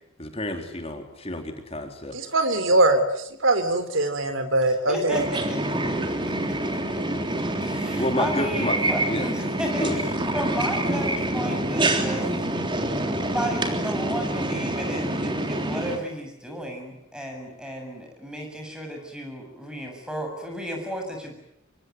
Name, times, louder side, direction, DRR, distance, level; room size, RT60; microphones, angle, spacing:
voice 1, 0.2-2.2 8.0-8.8 9.1-9.3 9.8-10.0, left 1 dB, 30° left, 5 dB, 3.8 m, -29 dB
voice 2, 2.1-3.0 3.4-5.3, right 2 dB, 70° right, 9 dB, 3.7 m, -21 dB
voice 3, 4.9-6.6 7.6-12.3 13.3-21.3, equal, 5° right, 2 dB, 7.4 m, -34 dB
sound 1, 5.1-16.0, right 1 dB, 25° right, 3.5 m, -26 dB
25.5 x 24.0 x 9.5 m, 0.78 s
head